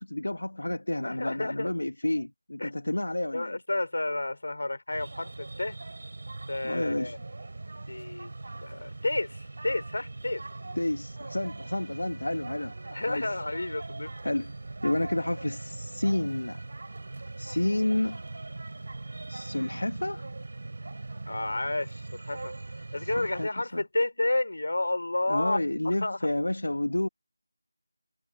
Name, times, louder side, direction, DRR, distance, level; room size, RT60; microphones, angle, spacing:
voice 1, 0.0-3.6 6.6-7.2 10.8-12.8 13.1-13.3 14.2-14.5 14.8-16.6 17.4-18.2 19.3-20.3 23.0-23.8 25.3-27.1, left 1 dB, 80° left, 1.8 m, -30 dB
voice 2, 1.0-1.7 2.6-2.7 3.3-5.8 6.5-7.2 7.9-8.3 8.6-10.4 12.9-14.1 21.3-22.5 22.9-25.6 25.8-26.2, left 2 dB, 60° left, 4.7 m, -31 dB
sound 1, 4.9-23.5, right 2 dB, 50° right, 4.4 m, -41 dB
figure-of-eight pair, 170°, 0 cm